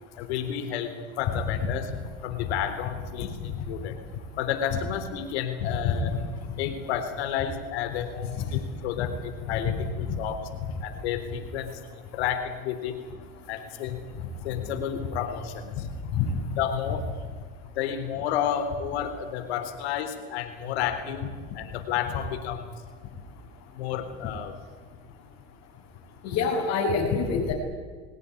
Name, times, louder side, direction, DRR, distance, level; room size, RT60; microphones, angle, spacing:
voice 1, 0.2-1.9 2.2-4.0 4.4-6.1 6.6-10.4 10.8-13.0 13.5-14.0 14.4-15.9 16.6-17.1 17.6-21.3 21.5-22.6 23.7-24.5, left 9 dB, 85° left, 7 dB, 3.9 m, -31 dB
voice 2, 5.6-6.0 9.0-9.1 10.1-10.2 16.1-16.3 26.2-27.5, left 6 dB, 60° left, -4 dB, 5.8 m, -26 dB
23.0 x 18.0 x 10.0 m, 1.5 s
supercardioid pair, 110°, 32 cm